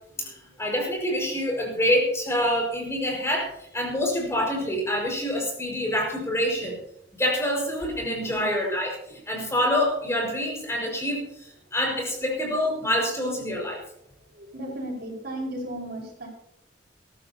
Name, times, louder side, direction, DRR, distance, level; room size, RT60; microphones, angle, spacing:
voice 1, 0.2-6.8 7.1-9.0 9.3-11.2 11.7-13.8, equal, 15° left, -1 dB, 5.4 m, -26 dB
voice 2, 14.3-16.3, right 1 dB, 60° right, 0 dB, 5.3 m, -35 dB
22.5 x 13.5 x 2.9 m, 0.75 s
head